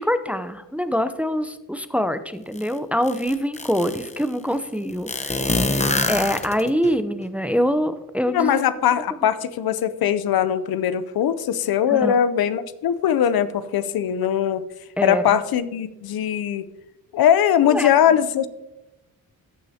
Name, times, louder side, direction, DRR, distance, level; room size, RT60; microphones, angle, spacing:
voice 1, 0.0-8.6 11.9-12.2 15.0-15.4 17.6-17.9, equal, 5° right, 11 dB, 0.6 m, -25 dB
sound 1, 2.6-2.7 3.0-4.2 5.1-6.9, left 2 dB, 15° left, 0.9 m, -24 dB
voice 2, 8.3-14.6 15.0-16.6 17.1-18.5, left 9 dB, 70° left, 14 dB, 0.6 m, -20 dB
14.5 x 6.1 x 2.8 m, 1.0 s
cardioid pair, 65°, 38 cm